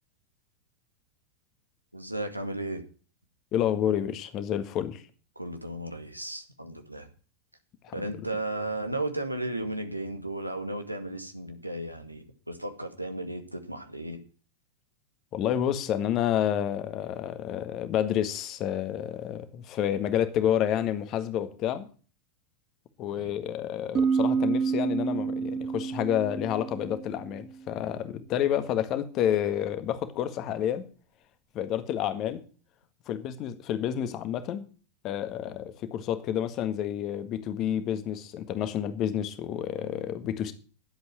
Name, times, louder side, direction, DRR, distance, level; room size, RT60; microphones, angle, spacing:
voice 1, 1.9-2.8 5.4-7.1 7.9-14.2 23.2-23.3, right 1 dB, 85° right, 2.0 m, -34 dB
voice 2, 3.5-5.0 7.8-7.9 15.3-21.9 23.0-30.8 31.5-32.4 33.1-34.7 35.0-40.5, left 10 dB, 35° left, 1.7 m, -29 dB
sound 1, 23.9-27.5, right 5 dB, 25° right, 1.4 m, -28 dB
12.0 x 8.1 x 7.6 m
figure-of-eight pair, 90°, 0 cm